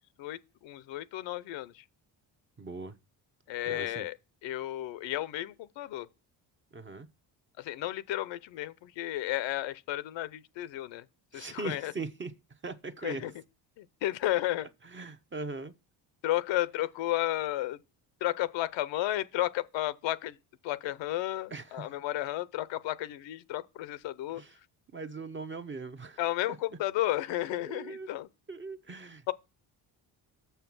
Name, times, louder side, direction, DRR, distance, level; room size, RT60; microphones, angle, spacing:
voice 1, 0.2-1.8 3.5-4.2 4.4-6.1 7.6-11.0 11.3-11.9 13.0-13.3 13.8-14.7 16.2-17.8 18.2-20.4 20.6-24.4 26.2-28.3 29.3-29.4, left 14 dB, 70° left, 0.7 m, -33 dB
voice 2, 2.6-3.0 3.7-4.1 6.7-7.1 11.3-12.3 12.6-13.2 14.8-15.7 21.5-21.9 24.4-24.5 24.9-26.2 27.5-28.1 28.5-29.2, right 3 dB, 25° right, 0.9 m, -40 dB
6.6 x 5.6 x 6.1 m
supercardioid pair, 70°, 46 cm